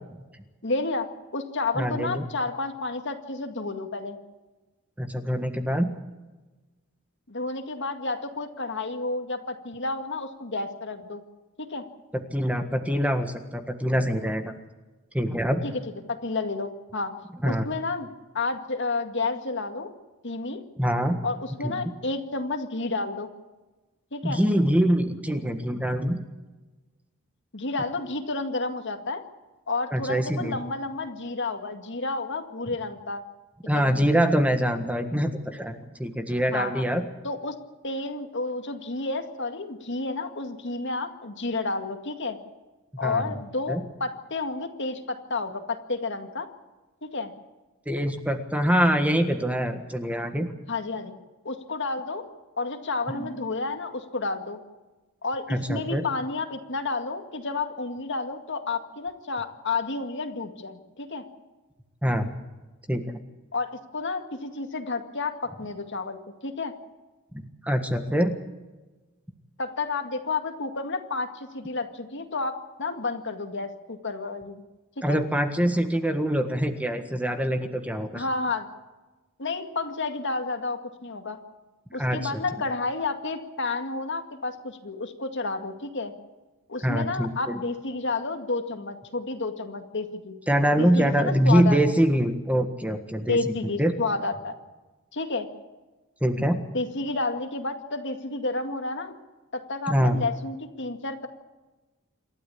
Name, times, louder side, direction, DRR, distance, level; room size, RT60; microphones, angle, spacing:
voice 1, 0.6-1.1 1.3-4.2 7.3-11.2 11.6-11.8 15.6-15.7 16.1-17.1 17.4-18.1 18.3-19.9 20.2-20.6 21.2-23.3 24.1-24.4 27.5-29.2 29.7-33.2 33.7-34.0 36.5-36.8 37.2-37.6 37.8-42.4 43.0-46.5 47.0-47.3 50.7-51.1 51.4-52.2 52.6-54.6 55.2-61.2 63.5-66.7 69.6-74.6 75.1-75.2 78.1-78.7 79.4-81.4 81.9-86.1 86.7-90.4 90.8-91.8 93.3-94.5 95.1-95.5 96.4-96.5 96.7-99.2 99.5-101.3, left 3 dB, 60° left, 6 dB, 2.1 m, -31 dB
voice 2, 1.8-2.2 5.0-5.9 12.3-14.5 15.1-15.6 17.4-17.7 20.8-21.2 21.6-21.7 24.2-26.2 29.9-30.6 33.7-37.0 43.0-43.4 43.7-43.8 47.8-50.5 53.2-53.3 55.5-56.0 62.0-62.3 62.9-63.0 67.6-68.3 75.0-78.2 82.0-82.3 86.8-87.6 90.5-93.9 96.2-96.6 99.9-100.2, equal, 5° right, 7 dB, 1.6 m, -24 dB
27.5 x 13.0 x 8.6 m, 1.2 s
head